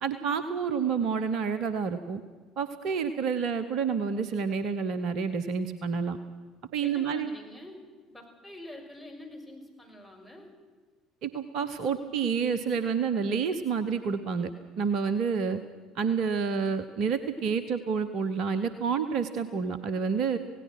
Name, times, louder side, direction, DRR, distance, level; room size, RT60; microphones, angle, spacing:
voice 1, 0.0-2.2 2.6-6.2 6.7-7.3 11.2-14.5 14.8-15.6 15.9-20.4, right 6 dB, 55° right, 12 dB, 1.1 m, -29 dB
voice 2, 6.8-10.5, left 1 dB, 5° right, 3 dB, 6.2 m, -46 dB
28.0 x 17.5 x 6.1 m, 1.5 s
figure-of-eight pair, 55°, 0 cm